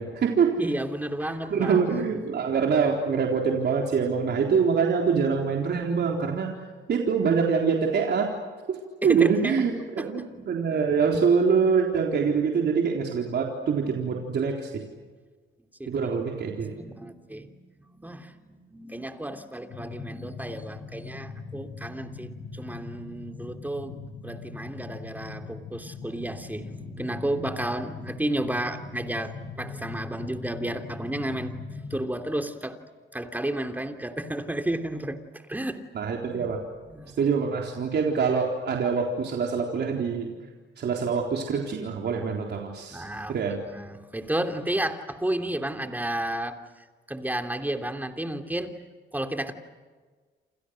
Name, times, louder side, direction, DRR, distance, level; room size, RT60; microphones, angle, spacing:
voice 1, 0.0-0.6 1.5-6.5 6.9-8.3 8.7-14.7 15.9-16.7 35.9-36.6 37.2-40.3 40.8-43.6, right 6 dB, 60° right, 0 dB, 4.0 m, -25 dB
voice 2, 0.6-1.8 2.1-2.2 9.0-10.9 15.8-16.1 16.4-31.5 31.9-32.8 33.1-35.8 36.3-36.5 36.9-37.2 42.9-48.7 49.1-49.5, right 1 dB, 10° right, 6 dB, 3.1 m, -32 dB
sound 1, 19.7-32.0, left 4 dB, 65° left, 8.0 m, -40 dB
29.0 x 28.0 x 6.5 m, 1.4 s
cardioid pair, 90°, 20 cm